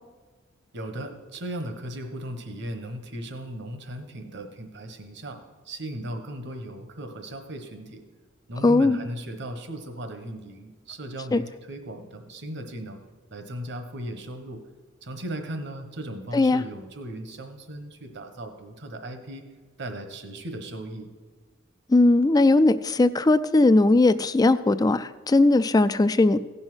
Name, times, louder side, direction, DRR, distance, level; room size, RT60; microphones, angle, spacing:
voice 1, 0.7-5.4 5.6-8.0 8.5-13.0 13.3-14.6 15.0-19.4 19.8-21.1, right 1 dB, 60° right, 7 dB, 1.1 m, -37 dB
voice 2, 8.6-9.0 11.3-11.4 16.3-16.6 21.9-26.4, left 2 dB, 20° left, 13 dB, 0.3 m, -19 dB
16.0 x 5.6 x 6.2 m, 1.3 s
head